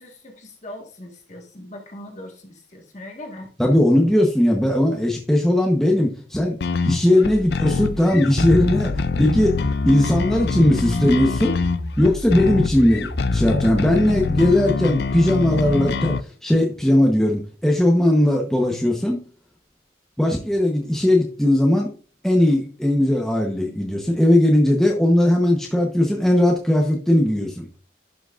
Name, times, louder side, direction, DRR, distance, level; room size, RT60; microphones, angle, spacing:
voice 1, 0.0-3.5, left 1 dB, 40° left, 1 dB, 1.6 m, -40 dB
voice 2, 3.6-6.6 6.9-9.6 9.8-11.6 12.0-16.2 16.4-19.2 20.2-21.9 22.2-27.7, left 1 dB, ahead, -1 dB, 0.9 m, -18 dB
sound 1, 6.6-16.2, left 4 dB, 60° left, 0.4 m, -25 dB
sound 2, 8.1-13.5, left 1 dB, 80° right, 2.0 m, -32 dB
11.5 x 6.0 x 2.5 m, 0.39 s
head